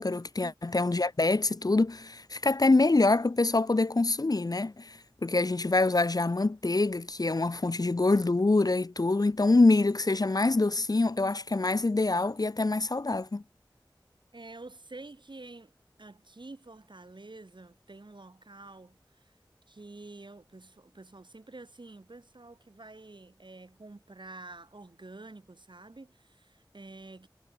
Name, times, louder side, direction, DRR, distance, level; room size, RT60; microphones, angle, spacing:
voice 1, 0.0-13.4, left 2 dB, 50° left, 0.7 m, -25 dB
voice 2, 14.3-15.7 16.0-19.0 19.7-27.3, right 2 dB, 65° right, 4.5 m, -48 dB
wide cardioid pair, 45°, 8 cm